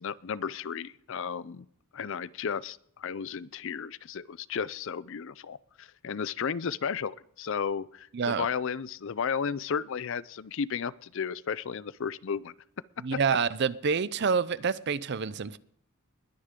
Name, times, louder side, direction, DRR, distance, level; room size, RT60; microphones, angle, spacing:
voice 1, 0.0-1.6 1.9-12.5, left 6 dB, 60° left, 0.5 m, -34 dB
voice 2, 8.1-8.5 13.0-15.6, right 5 dB, 50° right, 0.5 m, -27 dB
21.0 x 10.0 x 3.7 m
head